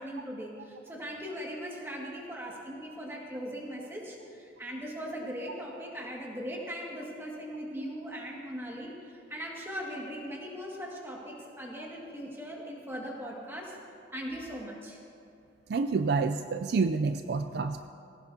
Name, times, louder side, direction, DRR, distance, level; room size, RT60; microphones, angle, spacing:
voice 1, 0.0-8.9 9.3-13.8 14.1-15.0, equal, 10° right, -2 dB, 1.9 m, -39 dB
voice 2, 15.7-17.9, right 4 dB, 55° right, 9 dB, 0.4 m, -28 dB
19.5 x 17.0 x 2.8 m, 2.6 s
head